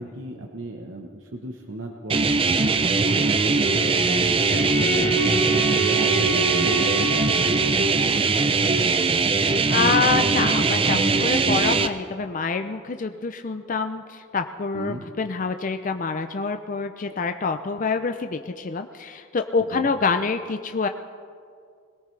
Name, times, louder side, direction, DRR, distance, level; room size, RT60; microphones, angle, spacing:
voice 1, 0.0-7.8 8.4-9.9 14.7-15.0 19.6-19.9, right 2 dB, 70° right, 2 dB, 1.1 m, -38 dB
sound 1, 2.1-11.9, right 4 dB, 25° right, 0.5 m, -21 dB
Bowed string instrument, 3.3-8.1, right 2 dB, 85° left, 3.1 m, -28 dB
voice 2, 9.7-20.9, left 4 dB, 40° left, 7 dB, 0.5 m, -26 dB
21.5 x 18.0 x 3.3 m, 2.3 s
head